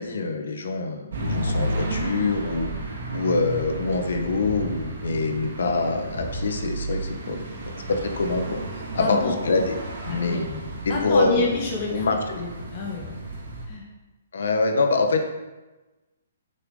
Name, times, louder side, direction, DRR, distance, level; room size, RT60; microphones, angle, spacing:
voice 1, 0.0-2.7 3.1-7.4 7.9-8.6 8.9-9.8 10.1-10.5 10.8-11.4 11.9-12.1 14.3-15.3, left 3 dB, 75° left, 4 dB, 1.5 m, -25 dB
sound 1, 1.1-13.7, right 1 dB, 65° right, 2.4 m, -32 dB
voice 2, 9.0-9.4 10.1-10.6 10.9-13.0 13.7-13.8, left 4 dB, 30° left, -2 dB, 1.6 m, -29 dB
9.2 x 6.7 x 4.0 m, 1.1 s
hypercardioid pair, 175°, 0 cm